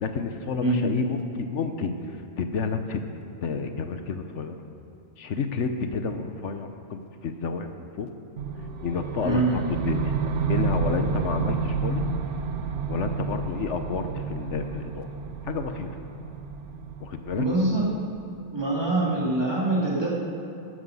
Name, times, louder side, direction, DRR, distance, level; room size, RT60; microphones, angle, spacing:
voice 1, 0.0-3.1 3.4-4.6 5.2-8.1 8.8-10.1 10.4-12.0 12.9-15.1 15.4-15.9 17.0-17.5, left 5 dB, 80° left, 7 dB, 1.2 m, -30 dB
sound 1, 8.4-18.4, right 5 dB, 85° right, 1.1 m, -30 dB
voice 2, 9.2-9.6 17.4-17.9 18.5-20.1, right 2 dB, 20° right, -6 dB, 3.1 m, -24 dB
13.5 x 12.5 x 5.5 m, 2.8 s
omnidirectional pair, 1.2 m